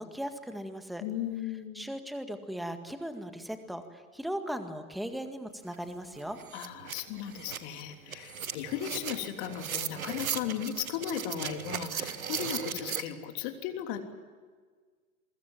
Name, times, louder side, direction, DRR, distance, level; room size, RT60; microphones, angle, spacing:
voice 1, 0.0-1.0 1.7-6.4, equal, ahead, 8 dB, 1.9 m, -38 dB
voice 2, 1.0-1.8 6.5-14.1, left 10 dB, 40° left, 5 dB, 3.4 m, -36 dB
sound 1, 5.7-5.8 6.1-13.0, right 7 dB, 70° right, 1.8 m, -37 dB
28.5 x 23.0 x 7.6 m, 1.5 s
figure-of-eight pair, 105°, 43 cm